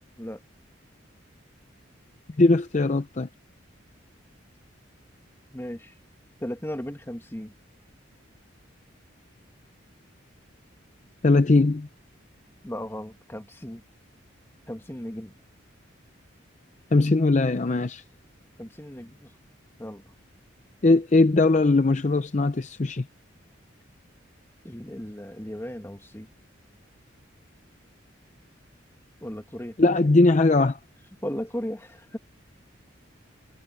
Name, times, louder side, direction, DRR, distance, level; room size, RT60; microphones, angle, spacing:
voice 1, 2.4-3.3 11.2-11.9 16.9-18.0 20.8-23.0 29.8-30.8, left 2 dB, 35° left, 0.6 m, -20 dB
voice 2, 5.5-5.9 6.4-7.5 12.6-13.8 14.7-15.3 18.6-19.3 19.8-20.0 24.6-26.3 29.2-29.8 31.2-32.2, equal, 10° left, 1.6 m, -36 dB
head